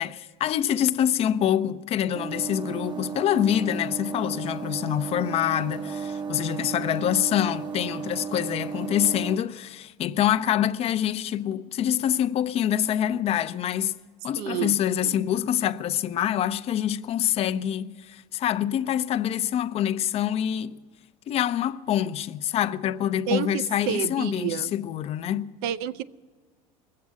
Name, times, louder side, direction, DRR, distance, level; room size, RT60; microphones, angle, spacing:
voice 1, 0.0-13.9 14.2-20.8 21.3-25.5, left 10 dB, 35° left, 0.5 m, -26 dB
sound 1, 2.1-9.4, right 6 dB, 25° right, 0.7 m, -34 dB
voice 2, 14.4-15.1 23.3-24.7 25.6-26.0, right 10 dB, 70° right, 0.5 m, -30 dB
20.5 x 7.5 x 9.4 m
supercardioid pair, 125°, 17 cm